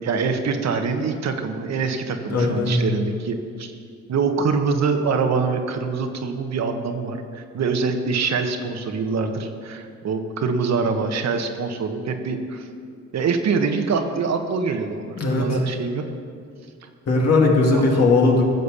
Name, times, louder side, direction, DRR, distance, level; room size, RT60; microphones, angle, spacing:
voice 1, 0.0-3.7 4.1-12.7 13.1-16.0 17.7-18.1, right 5 dB, 60° right, 6 dB, 1.3 m, -24 dB
voice 2, 2.3-2.7 15.1-15.6 17.1-18.4, left 3 dB, 55° left, -1 dB, 2.6 m, -18 dB
15.0 x 6.8 x 6.9 m, 2.3 s
cardioid pair, 90°, 30 cm